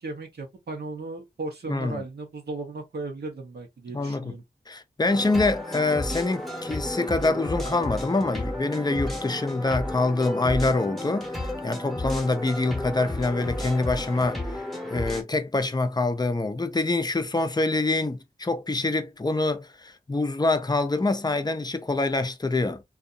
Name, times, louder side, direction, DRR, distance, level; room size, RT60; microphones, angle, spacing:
voice 1, 0.0-4.4, right 3 dB, 75° right, 0.8 m, -36 dB
voice 2, 1.7-2.0 3.9-4.3 4.7-14.4 14.9-22.8, left 2 dB, 25° left, 0.5 m, -25 dB
sound 1, 5.1-15.2, left 1 dB, ahead, 0.9 m, -32 dB
2.6 x 2.3 x 2.3 m
wide cardioid pair, 60°, 17 cm